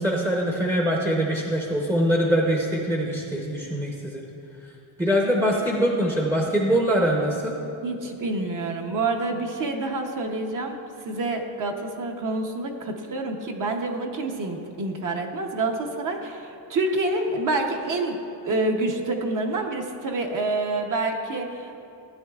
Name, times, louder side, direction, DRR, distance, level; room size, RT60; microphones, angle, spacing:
voice 1, 0.0-4.2 5.0-7.6, equal, 5° right, -2 dB, 0.7 m, -23 dB
voice 2, 7.8-10.8 11.0-18.2 18.4-21.8, right 2 dB, 40° right, 2 dB, 0.8 m, -27 dB
14.5 x 9.5 x 2.3 m, 2.7 s
cardioid pair, 160°, 48 cm